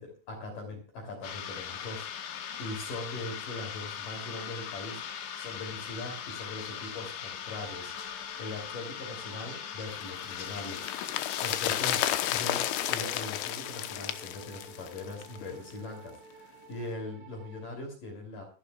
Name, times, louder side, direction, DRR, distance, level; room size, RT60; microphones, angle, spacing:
voice 1, 0.0-5.0 5.4-18.4, left 2 dB, 45° left, 2 dB, 4.3 m, -41 dB
sound 1, 1.2-12.0, left 8 dB, 65° left, 3.6 m, -40 dB
sound 2, 7.6-17.6, right 4 dB, 70° right, 5.0 m, -54 dB
sound 3, 10.0-15.4 15.7-15.8, left 13 dB, 85° left, 3.3 m, -32 dB
25.0 x 11.5 x 2.4 m, 0.33 s
omnidirectional pair, 5.6 m